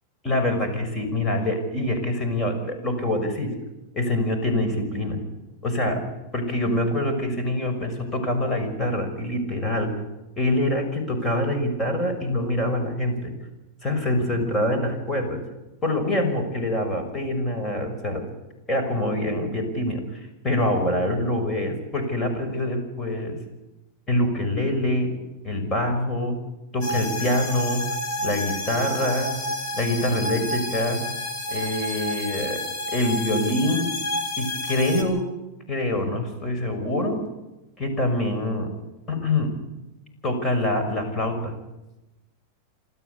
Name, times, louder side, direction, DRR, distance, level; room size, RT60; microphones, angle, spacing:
voice 1, 0.2-3.5 3.9-5.2 5.6-6.0 6.3-9.9 10.4-13.3 13.8-15.4 15.8-18.2 18.7-23.3 24.1-25.1 25.4-26.4 26.7-27.9 28.2-29.4 29.7-31.1 31.5-32.6 32.9-33.9 34.4-35.3 35.7-37.2 37.8-38.7 39.1-39.5 40.2-41.5, left 1 dB, 20° left, 5 dB, 6.1 m, -25 dB
sound 1, 26.8-35.0, left 1 dB, 45° left, 5.0 m, -30 dB
27.5 x 13.0 x 8.4 m, 1.0 s
supercardioid pair, 135°, 0 cm